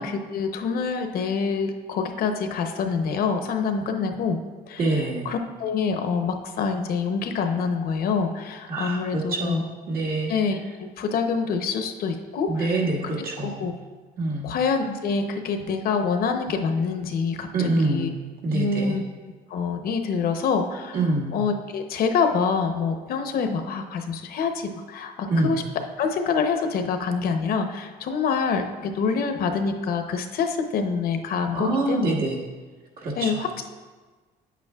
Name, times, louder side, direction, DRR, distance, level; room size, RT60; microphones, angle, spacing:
voice 1, 0.0-4.4 4.7-4.9 5.2-9.6 10.3-12.7 13.6-13.7 14.4-18.1 18.5-19.0 19.5-21.0 21.3-25.6 26.0-32.1 33.2-33.5, left 5 dB, 60° left, 6 dB, 0.8 m, -26 dB
voice 2, 4.8-5.3 8.7-10.3 12.5-13.7 14.2-14.5 17.5-18.1 18.4-19.0 20.9-21.4 25.3-25.6 31.5-32.4 33.0-33.4, right 2 dB, 65° right, -3 dB, 1.8 m, -25 dB
8.8 x 8.3 x 2.3 m, 1.4 s
cardioid pair, 110°, 17 cm